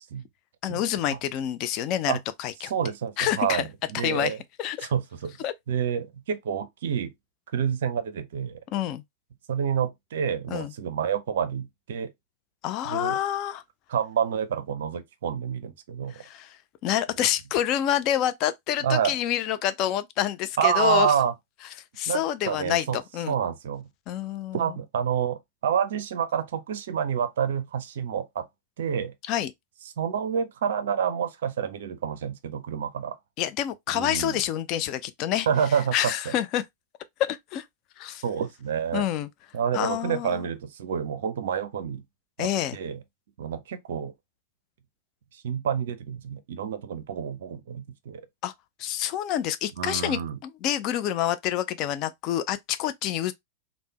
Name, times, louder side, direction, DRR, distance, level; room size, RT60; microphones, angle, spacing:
voice 1, 0.6-2.7 3.2-3.6 3.9-4.3 4.6-4.9 5.4-5.5 8.7-9.0 10.5-10.7 12.6-13.6 16.1-16.6 16.8-21.1 22.0-23.4 24.1-24.8 29.3-29.5 33.4-35.5 35.9-36.6 37.3-37.6 38.0-38.2 38.9-39.3 39.7-40.4 42.4-42.8 48.4-48.5 48.8-53.3, left 11 dB, 40° left, 0.3 m, -27 dB
voice 2, 2.6-4.4 4.8-5.4 5.7-7.1 7.5-8.6 9.5-12.1 12.9-13.2 13.9-16.2 18.8-19.2 20.6-21.3 22.1-23.0 23.3-23.9 24.5-28.5 28.8-29.1 30.0-33.2 33.9-34.4 35.5-36.3 38.2-39.1 39.5-42.0 42.4-43.0 43.4-44.1 45.3-48.3 49.8-50.4, right 8 dB, 60° right, 0.4 m, -28 dB
3.3 x 2.0 x 2.8 m
figure-of-eight pair, 90°, 0 cm